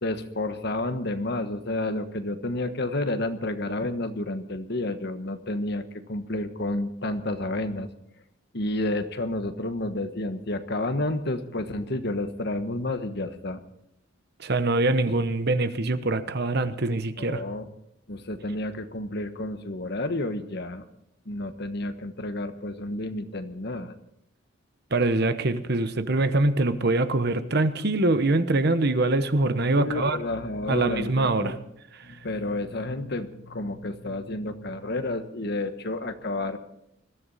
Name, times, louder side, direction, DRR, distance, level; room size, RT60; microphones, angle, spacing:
voice 1, 0.0-7.9 8.5-13.6 17.2-17.7 18.1-20.9 21.2-23.9 29.7-31.6 32.0-36.6, left 2 dB, 55° left, 1.3 m, -30 dB
voice 2, 14.4-17.4 24.9-30.2 30.7-31.6 31.9-32.2, right 2 dB, 55° right, 1.1 m, -24 dB
21.5 x 14.5 x 4.2 m
head